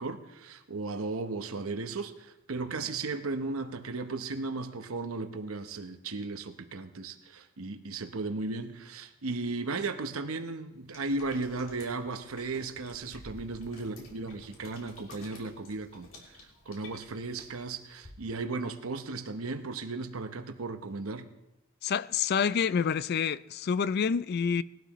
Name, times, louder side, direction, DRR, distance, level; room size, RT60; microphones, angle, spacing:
voice 1, 0.0-16.4 16.7-21.3, right 3 dB, 80° right, 0.9 m, -36 dB
sound 1, 10.9-18.1, left 2 dB, 70° left, 3.3 m, -52 dB
voice 2, 21.8-24.6, left 6 dB, 50° left, 0.3 m, -28 dB
20.0 x 12.0 x 3.0 m
head